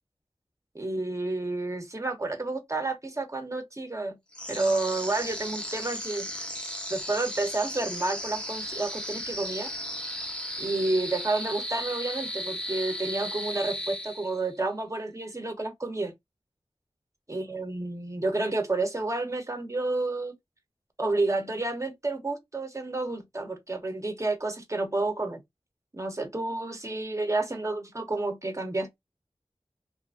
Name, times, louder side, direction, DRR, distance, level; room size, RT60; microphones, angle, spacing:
voice 1, 0.7-4.2 4.5-6.5 6.9-9.7 10.6-16.1 17.3-20.3 21.0-25.4 25.9-29.0, right 2 dB, 30° right, 0.8 m, -30 dB
sound 1, 4.3-14.6, equal, 10° left, 0.7 m, -35 dB
2.7 x 2.5 x 2.4 m
wide cardioid pair, 50°, 11 cm